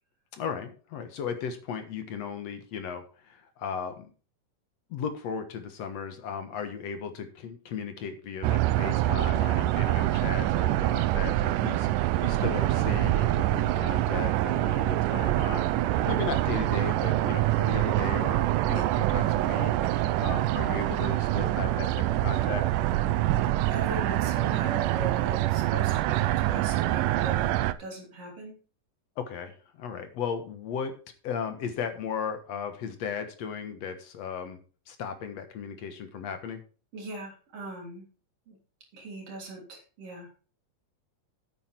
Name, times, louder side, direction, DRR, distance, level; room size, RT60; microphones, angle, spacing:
voice 1, 0.3-4.1 4.9-22.6 29.2-30.9 31.2-34.6 34.9-36.6, left 6 dB, 60° left, 8 dB, 2.2 m, -36 dB
sound 1, 8.4-27.7, right 15 dB, 80° right, 2.2 m, -25 dB
voice 2, 23.7-27.5 27.8-28.6 36.9-38.0 38.5-38.6 38.9-40.3, right 2 dB, 45° right, 0 dB, 4.2 m, -40 dB
9.7 x 8.8 x 4.4 m, 0.37 s
omnidirectional pair, 3.7 m